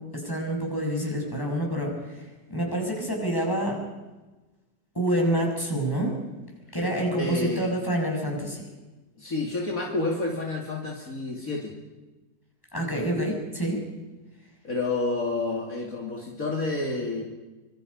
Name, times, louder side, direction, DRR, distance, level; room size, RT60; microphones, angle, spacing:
voice 1, 0.1-3.8 4.9-6.1 6.7-8.6 12.7-13.8, right 1 dB, 10° left, 0 dB, 6.1 m, -27 dB
voice 2, 7.2-7.7 9.2-11.8 14.6-17.2, left 3 dB, 55° left, -1 dB, 3.1 m, -29 dB
25.5 x 24.5 x 5.4 m, 1.2 s
omnidirectional pair, 1.8 m